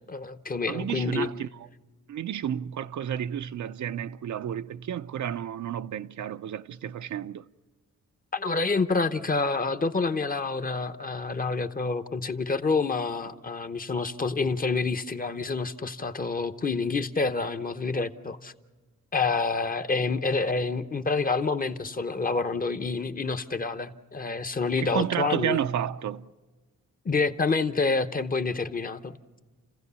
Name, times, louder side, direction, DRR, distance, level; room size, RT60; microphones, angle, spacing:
voice 1, 0.0-1.3 8.3-18.5 19.1-25.6 27.0-29.2, left 4 dB, 30° left, 0.8 m, -28 dB
voice 2, 0.7-1.7 2.1-7.4 24.8-26.3, right 10 dB, 70° right, 0.6 m, -31 dB
29.5 x 15.5 x 6.9 m
wide cardioid pair, 130°, 31 cm